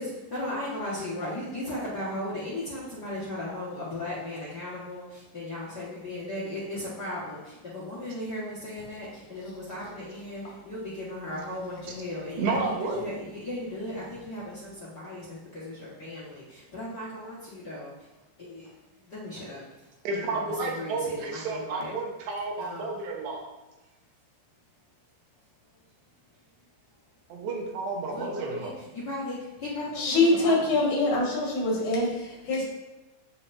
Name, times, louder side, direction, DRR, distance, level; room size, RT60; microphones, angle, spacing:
voice 1, 0.0-21.9 22.6-23.0 26.6-26.7 28.1-30.7, left 1 dB, 75° left, -8 dB, 0.9 m, -37 dB
voice 2, 12.4-13.2 20.1-23.5 27.3-28.8, right 3 dB, 80° right, 0 dB, 3.3 m, -31 dB
voice 3, 30.0-32.6, left 2 dB, 50° left, -3 dB, 2.9 m, -24 dB
7.8 x 7.4 x 2.7 m, 1.1 s
omnidirectional pair, 4.9 m